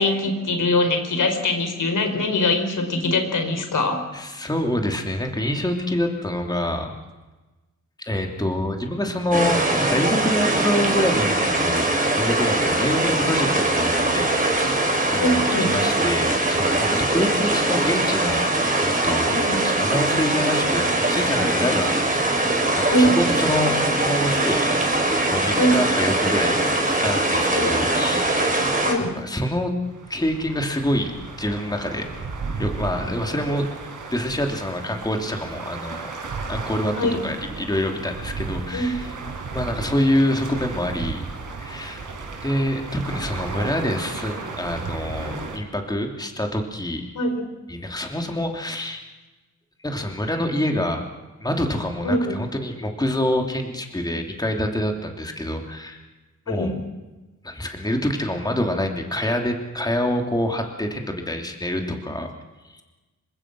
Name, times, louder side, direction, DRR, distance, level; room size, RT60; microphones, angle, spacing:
voice 1, 0.0-4.0 15.2-15.7 19.3-19.6 22.9-23.2 25.6-25.8 27.5-27.7 28.8-29.1 36.9-37.2 38.7-38.9 47.1-47.4 52.0-52.4 56.5-56.8, left 1 dB, 80° left, 5 dB, 4.8 m, -22 dB
voice 2, 4.1-7.0 8.0-11.9 12.1-14.7 15.1-18.4 18.8-24.7 25.3-26.6 26.9-28.7 29.1-29.7 30.1-31.1 31.4-32.1 32.6-33.7 34.1-36.1 36.5-37.0 37.2-39.2 39.5-41.2 41.6-42.0 42.4-47.0 47.7-49.0 49.8-51.0 51.4-56.0 56.5-56.8 57.4-62.3 62.6-62.8, left 1 dB, 15° left, 3 dB, 2.9 m, -26 dB
sound 1, 9.3-28.9, right 2 dB, 25° right, 5.4 m, -22 dB
sound 2, 29.8-45.6, right 4 dB, 80° right, 5.5 m, -34 dB
27.5 x 25.0 x 6.2 m, 1.1 s
wide cardioid pair, 135°, 30 cm